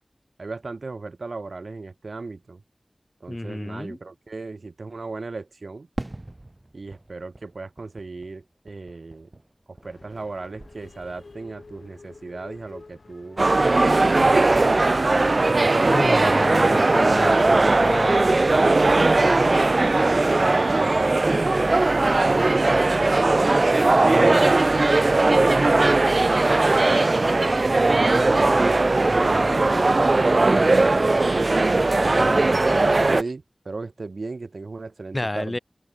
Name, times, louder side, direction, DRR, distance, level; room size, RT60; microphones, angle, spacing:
voice 1, 0.4-2.6 3.2-5.9 6.7-9.4 9.7-13.4 14.0-15.0 15.5-16.0 16.5-17.8 20.0-23.1 23.8-26.1 26.9-29.7 30.5-31.0 31.9-35.6, right 3 dB, 75° right, 3.0 m, -35 dB
voice 2, 3.3-4.0 15.9-18.3 29.0-29.6 35.1-35.6, left 1 dB, 30° left, 5.3 m, -30 dB
Fireworks, 6.0-10.3 10.6-11.4, right 1 dB, 30° right, 3.6 m, -41 dB
sound 1, 9.8-16.6, left 3 dB, 75° left, 5.4 m, -47 dB
sound 2, 13.4-33.2, right 2 dB, 55° right, 1.6 m, -19 dB
open air
wide cardioid pair, 60°, 0 cm